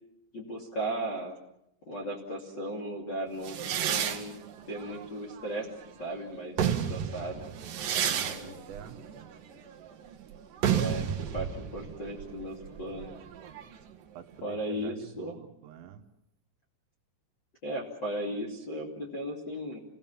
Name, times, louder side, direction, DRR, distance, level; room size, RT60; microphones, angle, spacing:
voice 1, 0.3-1.4 1.9-5.7 6.0-6.5 6.9-7.4 8.3-8.6 10.7-11.1 11.3-13.1 14.4-15.3 17.6-19.8, right 1 dB, 35° left, -1 dB, 2.1 m, -36 dB
sound 1, 3.4-5.9 6.4-13.9, right 9 dB, 60° right, 2.5 m, -32 dB
voice 2, 8.0-9.0 14.2-16.0, right 9 dB, 75° right, 6 dB, 3.9 m, -46 dB
29.0 x 18.5 x 7.3 m, 0.79 s
omnidirectional pair, 6.0 m